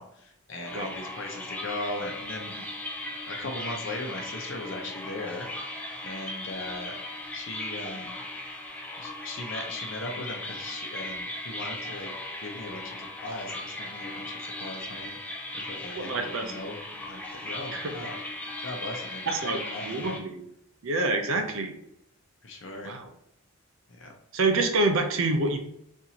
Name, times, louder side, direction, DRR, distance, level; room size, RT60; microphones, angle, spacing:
voice 1, 0.0-2.6 3.3-7.0 7.3-8.2 9.0-12.1 12.4-18.2 18.6-20.1 21.2-21.5 22.4-22.9 23.9-24.1, left 2 dB, 55° left, 2 dB, 0.7 m, -38 dB
sound 1, 0.6-20.2, left 1 dB, 5° left, 0.3 m, -38 dB
voice 2, 15.9-16.5 17.7-17.9 19.3-20.4 20.8-21.7 22.8-23.1 24.3-25.6, right 2 dB, 65° right, 5 dB, 0.5 m, -27 dB
4.1 x 2.6 x 2.8 m, 0.78 s
head